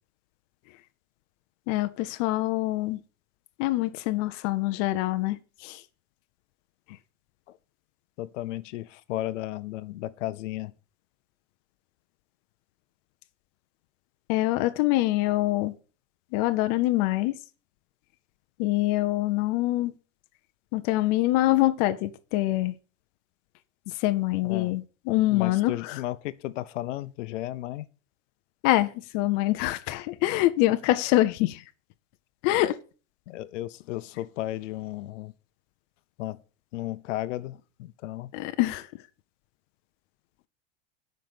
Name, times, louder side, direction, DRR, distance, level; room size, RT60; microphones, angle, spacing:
voice 1, 1.7-3.0 3.6-5.8 14.3-15.7 16.3-17.4 18.6-19.9 20.7-22.7 23.9-26.0 28.6-31.6 32.4-32.8 38.3-38.9, left 17 dB, 35° left, 0.6 m, -25 dB
voice 2, 8.2-10.7 24.4-24.7 25.3-27.9 33.3-35.3 36.2-36.4 36.7-38.3, left 15 dB, 80° left, 0.7 m, -34 dB
7.6 x 5.3 x 6.9 m
supercardioid pair, 165°, 36 cm